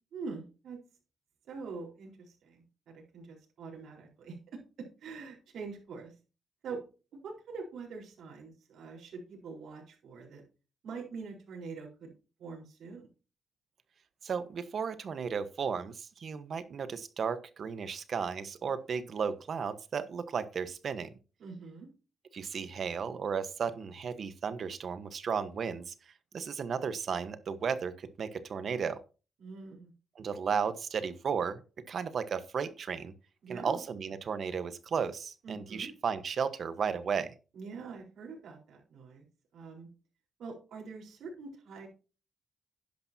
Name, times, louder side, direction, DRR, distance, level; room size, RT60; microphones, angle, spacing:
voice 1, 0.1-0.8 1.5-4.4 5.0-6.1 6.6-6.8 7.2-10.4 10.8-12.1 12.4-13.1 21.4-21.9 29.4-29.9 33.4-33.8 35.4-35.9 37.5-39.2 39.5-39.9 40.4-41.9, right 4 dB, 75° right, 0 dB, 4.2 m, -44 dB
voice 2, 14.2-21.1 22.3-25.9 26.3-29.0 30.2-31.6 31.9-33.1 33.5-37.3, right 6 dB, 50° right, 12 dB, 1.2 m, -34 dB
11.5 x 10.5 x 2.8 m, 0.33 s
cardioid pair, 130°, 0 cm